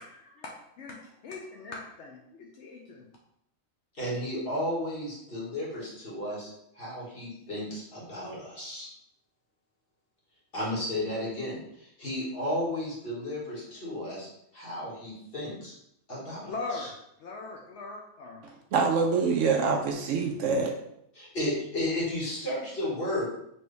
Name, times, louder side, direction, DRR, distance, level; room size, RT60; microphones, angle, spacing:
voice 1, 1.2-3.1 16.5-18.5, left 3 dB, 65° left, 0 dB, 0.8 m, -40 dB
voice 2, 3.9-8.9 10.5-15.7 16.1-16.9 21.1-23.3, left 1 dB, 45° left, -7 dB, 1.8 m, -33 dB
voice 3, 18.7-20.7, right 4 dB, 70° right, 1 dB, 0.8 m, -25 dB
4.3 x 3.0 x 3.3 m, 0.75 s
omnidirectional pair, 1.4 m